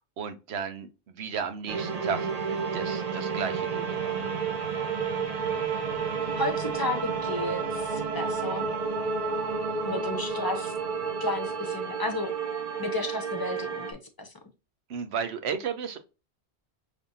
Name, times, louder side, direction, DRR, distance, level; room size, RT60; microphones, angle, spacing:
voice 1, 0.2-2.3 2.7-4.3 14.9-16.0, right 6 dB, 70° right, 1.0 m, -34 dB
sound 1, 1.7-13.9, right 5 dB, 45° right, 0.7 m, -31 dB
voice 2, 6.4-8.6 9.8-10.7 11.2-12.3 12.8-14.3, left 2 dB, 25° left, 0.6 m, -32 dB
5.1 x 2.7 x 2.6 m
omnidirectional pair, 1.1 m